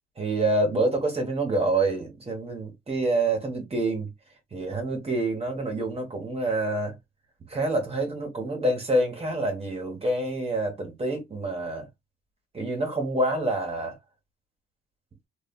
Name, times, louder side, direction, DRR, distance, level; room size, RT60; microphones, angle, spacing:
voice 1, 0.2-4.1 4.5-7.0 7.5-11.9 12.5-14.0, right 2 dB, 30° right, 1.2 m, -27 dB
3.2 x 2.3 x 2.3 m
cardioid pair, 90°, 20 cm